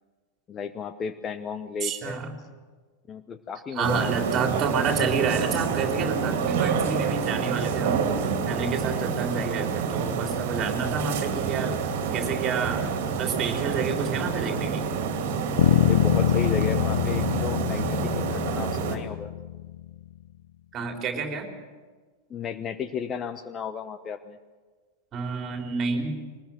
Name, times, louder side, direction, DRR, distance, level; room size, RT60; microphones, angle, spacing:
voice 1, 0.5-2.2 3.1-4.3 15.8-19.3 22.3-24.4, left 6 dB, 25° left, 11 dB, 0.9 m, -34 dB
voice 2, 1.8-2.3 3.7-11.8 12.1-12.8 13.2-14.9 20.7-21.5 25.1-26.2, right 5 dB, 30° right, 4 dB, 3.5 m, -29 dB
sound 1, 3.8-19.0, right 6 dB, 50° right, 2.5 m, -28 dB
sound 2, 15.6-19.9, left 12 dB, 60° left, 0.9 m, -25 dB
22.5 x 19.5 x 7.7 m, 1.4 s
figure-of-eight pair, 90°, 0 cm